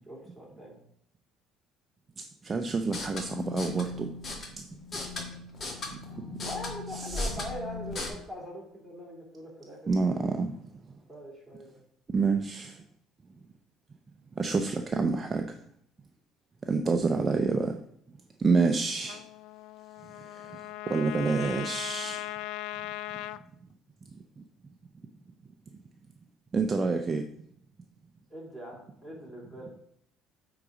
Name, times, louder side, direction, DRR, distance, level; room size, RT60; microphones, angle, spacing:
voice 1, 0.1-0.8 6.4-9.9 11.1-11.8 28.3-29.7, equal, 5° left, -3 dB, 2.9 m, -42 dB
voice 2, 2.4-4.1 4.5-4.7 6.2-6.3 6.9-7.4 9.9-10.6 12.1-12.8 14.4-15.6 16.6-17.8 18.4-19.2 20.3-22.2 26.5-27.2, right 4 dB, 25° right, 5 dB, 0.5 m, -28 dB
sound 1, 2.8-8.1, left 3 dB, 35° left, 1.4 m, -37 dB
Trumpet, 19.0-23.4, left 14 dB, 80° left, 0.3 m, -38 dB
8.3 x 4.0 x 4.9 m, 0.68 s
cardioid pair, 130°, 0 cm